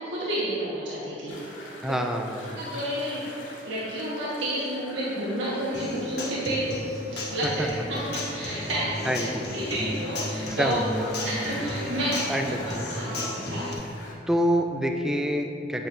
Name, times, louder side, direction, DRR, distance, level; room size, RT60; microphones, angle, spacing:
voice 1, 0.0-2.0 2.5-3.2 3.7-6.7 7.1-10.8 11.2-13.7, right 1 dB, 90° right, -8 dB, 1.5 m, -31 dB
sound 1, 1.3-14.1, left 1 dB, 85° left, 1.8 m, -46 dB
voice 2, 1.8-2.6 7.4-7.7 7.9-8.0 9.1-9.4 10.5-11.3 12.3-12.8 14.3-15.9, equal, 5° right, 3 dB, 0.4 m, -27 dB
Human voice / Acoustic guitar, 5.7-13.7, left 1 dB, 60° left, 1.4 m, -34 dB
8.7 x 7.3 x 2.6 m, 2.8 s
head